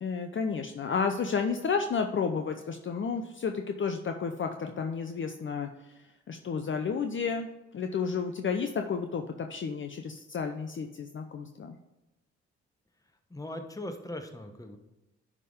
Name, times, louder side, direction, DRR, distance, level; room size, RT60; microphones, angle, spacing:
voice 1, 0.0-5.7 6.3-7.5 7.7-11.8, left 5 dB, 35° left, 5 dB, 0.7 m, -31 dB
voice 2, 13.3-14.8, left 1 dB, 10° left, 6 dB, 1.2 m, -39 dB
11.0 x 3.7 x 5.0 m, 1.0 s
hypercardioid pair, 45°, 33 cm